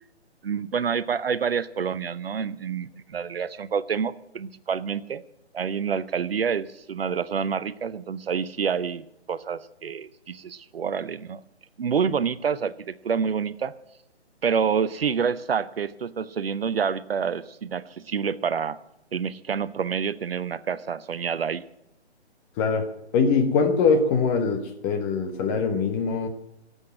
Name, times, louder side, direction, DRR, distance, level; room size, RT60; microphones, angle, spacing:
voice 1, 0.4-5.2 5.5-11.4 11.8-13.7 14.4-18.8 19.1-21.6, right 6 dB, 60° right, 16 dB, 0.8 m, -28 dB
voice 2, 23.1-26.3, left 5 dB, 15° left, 5 dB, 1.1 m, -22 dB
17.5 x 8.2 x 8.7 m, 0.83 s
figure-of-eight pair, 150°, 34 cm